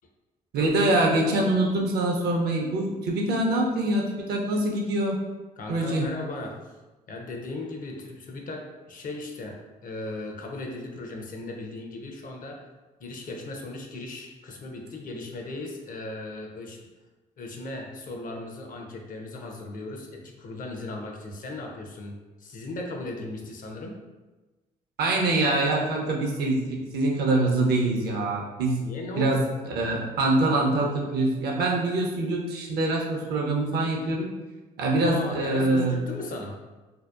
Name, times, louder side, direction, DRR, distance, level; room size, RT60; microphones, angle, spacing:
voice 1, 0.5-5.2 5.7-6.1 25.0-28.8 29.1-29.4 29.7-34.4 34.8-36.0, right 2 dB, 65° right, -1 dB, 0.6 m, -24 dB
voice 2, 5.6-6.6 7.1-12.6 13.0-16.9 17.4-24.0 28.8-29.4 35.0-36.6, left 2 dB, 50° left, 1 dB, 0.5 m, -37 dB
2.7 x 2.1 x 2.3 m, 1.2 s
hypercardioid pair, 50°, 18 cm